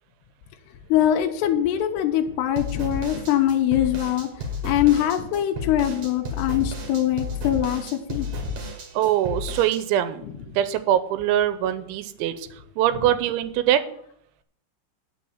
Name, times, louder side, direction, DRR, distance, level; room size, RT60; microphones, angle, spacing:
voice 1, 0.9-4.3 4.6-8.3 10.2-10.3, left 11 dB, 80° left, 3 dB, 2.6 m, -23 dB
sound 1, 2.6-9.8, left 3 dB, 50° right, 2.5 m, -32 dB
voice 2, 8.9-10.2 10.6-12.5 12.8-13.8, right 11 dB, 85° right, 12 dB, 3.0 m, -23 dB
9.4 x 6.5 x 7.1 m, 0.69 s
omnidirectional pair, 5.4 m